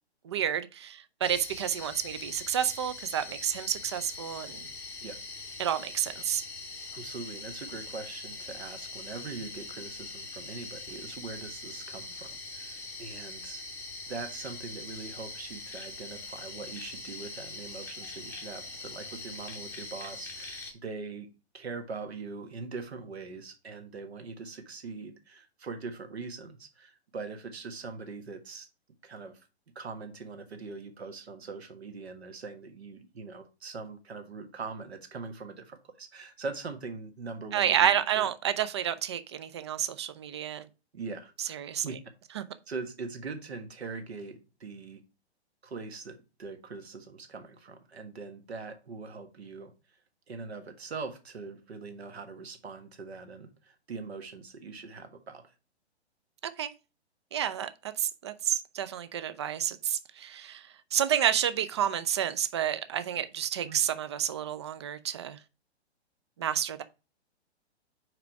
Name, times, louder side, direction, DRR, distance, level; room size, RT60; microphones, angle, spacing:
voice 1, 0.2-4.7 5.6-6.5 37.5-40.7 41.5-41.8 42.4-42.5 56.6-56.7 57.3-57.7 58.0-65.4 66.4-66.8, right 9 dB, 25° right, 0.3 m, -30 dB
sound 1, 1.2-20.7, left 3 dB, 5° left, 0.8 m, -42 dB
voice 2, 6.9-13.6 14.1-21.3 21.5-28.7 29.0-29.5 29.7-38.3 40.9-42.0 42.7-45.0 45.6-49.7 50.3-55.4 63.6-63.8, right 4 dB, 70° right, 1.5 m, -42 dB
4.8 x 4.8 x 4.5 m
figure-of-eight pair, 125°, 33 cm